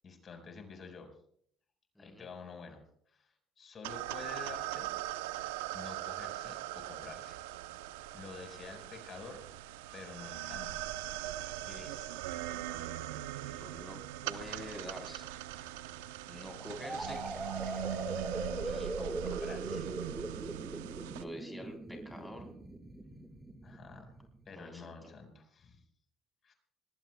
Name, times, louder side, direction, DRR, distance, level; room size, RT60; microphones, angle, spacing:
voice 1, 0.0-1.1 2.0-5.0 5.7-7.4 8.1-9.4 9.9-10.7 11.6-12.2 18.3-20.0 23.6-24.1 24.5-25.8 26.4-26.5, left 4 dB, 45° left, 5 dB, 4.6 m, -49 dB
voice 2, 2.0-2.3 13.5-15.3 16.3-17.2 18.5-19.4 21.2-22.6 24.5-25.1, equal, 5° left, 1 dB, 3.6 m, -47 dB
sound 1, 3.8-21.2, right 13 dB, 90° right, 0.7 m, -40 dB
sound 2, 16.8-24.5, right 1 dB, 15° right, 1.7 m, -41 dB
26.0 x 20.0 x 2.2 m, 0.64 s
supercardioid pair, 70°, 0 cm